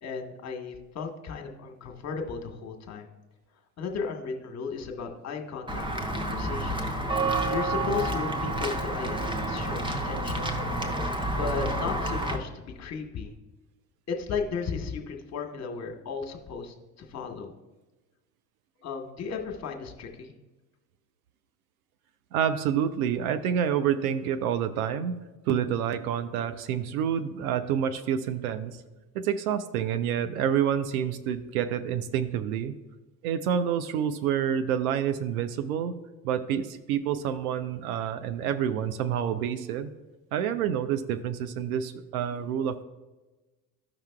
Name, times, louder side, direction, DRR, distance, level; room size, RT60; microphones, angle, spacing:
voice 1, 0.0-3.1 3.8-6.8 7.5-10.5 11.3-13.3 14.1-17.5 18.8-20.3, left 5 dB, 35° left, 4 dB, 1.2 m, -35 dB
Walk footsteps / Bell, 5.7-12.4, right 1 dB, 10° right, 0.8 m, -29 dB
voice 2, 22.3-25.2 25.5-28.8 29.1-32.7 33.2-35.9 36.2-39.9 40.3-42.8, right 9 dB, 65° right, 10 dB, 0.6 m, -28 dB
13.5 x 5.8 x 2.3 m, 1.2 s
figure-of-eight pair, 65°, 48 cm